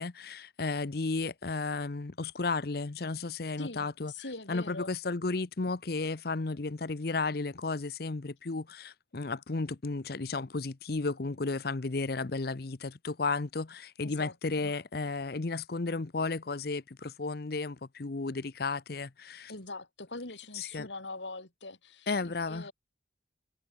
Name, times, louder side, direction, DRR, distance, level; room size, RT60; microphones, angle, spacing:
voice 1, 0.0-4.1 4.5-19.5 20.5-20.9 22.1-22.7, left 3 dB, 55° left, 0.8 m, -33 dB
voice 2, 3.6-4.9 14.0-14.7 19.5-22.7, left 2 dB, 80° left, 4.6 m, -43 dB
head